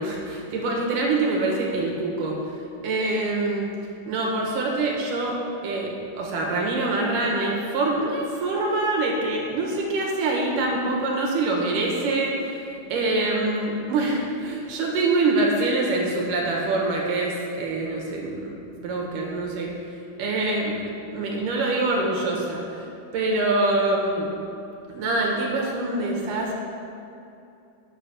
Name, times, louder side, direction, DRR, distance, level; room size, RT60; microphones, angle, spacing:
voice 1, 0.0-2.4 2.8-3.7 4.1-5.4 5.6-12.5 12.9-19.7 20.2-20.8 21.1-22.9 23.1-24.3 24.9-26.5, right 2 dB, 80° right, -1 dB, 3.1 m, -25 dB
9.4 x 7.7 x 6.1 m, 2.6 s
omnidirectional pair, 3.7 m